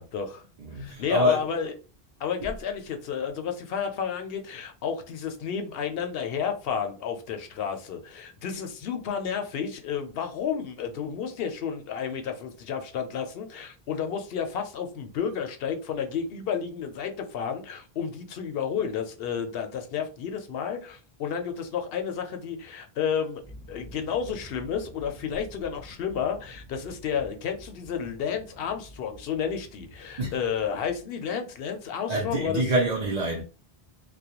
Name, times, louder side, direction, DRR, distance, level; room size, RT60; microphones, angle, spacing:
voice 1, 0.0-0.4 0.7-1.7 2.2-23.4 23.7-32.6, left 7 dB, 75° left, 0.8 m, -31 dB
voice 2, 0.6-1.4 30.2-30.4 32.1-33.4, equal, 50° right, 0.5 m, -26 dB
sound 1, 23.4-31.0, equal, 10° right, 0.9 m, -49 dB
2.4 x 2.1 x 2.8 m
omnidirectional pair, 1.0 m